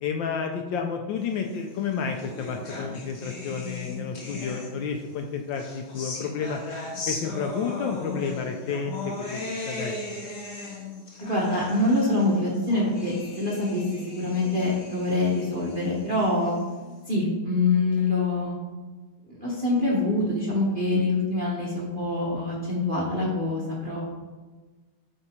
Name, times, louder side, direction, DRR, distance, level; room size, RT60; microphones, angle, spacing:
voice 1, 0.0-6.6 7.1-8.9 9.3-10.2, left 6 dB, 75° left, 3 dB, 1.2 m, -31 dB
sound 1, 1.6-5.0 5.5-17.0, left 2 dB, 40° left, 1.2 m, -38 dB
voice 2, 11.3-16.5 17.1-18.5 19.3-24.0, left 2 dB, 35° right, -5 dB, 0.9 m, -25 dB
7.9 x 3.8 x 4.3 m, 1.3 s
omnidirectional pair, 2.3 m